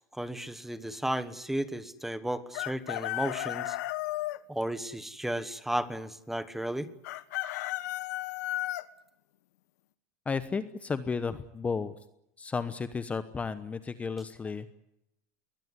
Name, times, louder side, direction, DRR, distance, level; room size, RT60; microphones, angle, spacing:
voice 1, 0.1-3.8 4.5-6.9, right 1 dB, 5° right, 14 dB, 1.3 m, -34 dB
Chicken rooster, 2.5-4.4 7.0-8.8, left 17 dB, 80° left, 1.3 m, -33 dB
voice 2, 10.3-11.9 12.4-14.7, left 5 dB, 15° left, 13 dB, 1.0 m, -33 dB
22.0 x 19.5 x 9.8 m, 0.79 s
supercardioid pair, 145°, 9 cm